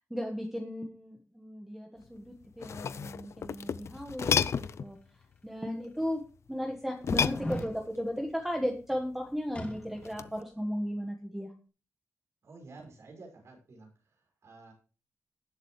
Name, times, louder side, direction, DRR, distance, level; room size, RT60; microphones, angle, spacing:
voice 1, 0.1-4.5 4.8-5.0 5.4-6.2 6.5-11.5, equal, 5° right, 2 dB, 1.4 m, -35 dB
sound 1, 2.4-4.9 7.0-8.0 10.1-10.4, left 7 dB, 65° left, 0.5 m, -31 dB
sound 2, 5.2-5.3 6.0-6.1 7.2-7.7 9.5-10.2 10.5-10.6, left 1 dB, 25° left, 2.6 m, -39 dB
voice 2, 12.4-13.9 14.4-14.7, right 3 dB, 65° right, 1 dB, 6.0 m, -50 dB
18.5 x 7.9 x 3.2 m, 0.36 s
wide cardioid pair, 175°, 5 cm